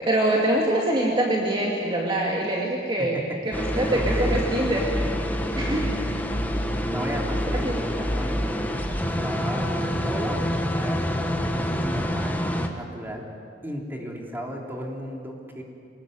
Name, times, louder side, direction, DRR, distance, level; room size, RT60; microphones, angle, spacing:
voice 1, 0.1-3.2 3.5-4.9 5.3-6.2 7.6-7.9, right 1 dB, 25° right, -2 dB, 2.5 m, -24 dB
voice 2, 3.0-3.4 3.7-4.5 6.9-12.4 12.7-13.3 13.6-15.6, equal, 10° right, -1 dB, 3.5 m, -35 dB
sound 1, 3.5-12.7, equal, 10° left, 1.5 m, -26 dB
25.0 x 20.5 x 9.3 m, 2.5 s
head